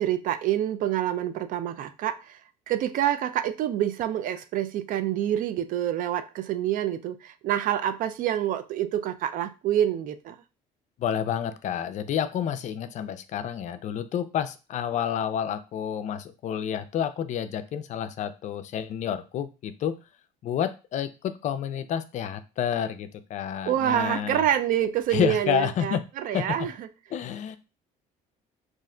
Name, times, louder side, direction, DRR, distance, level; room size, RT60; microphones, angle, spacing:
voice 1, 0.0-2.4 2.7-10.4 23.7-26.9, right 11 dB, 60° right, 0.4 m, -27 dB
voice 2, 11.0-19.9 20.4-24.5 25.1-26.0 26.3-26.4 27.1-27.6, left 9 dB, 50° left, 0.4 m, -29 dB
2.5 x 2.1 x 3.7 m
cardioid pair, 100°, 16 cm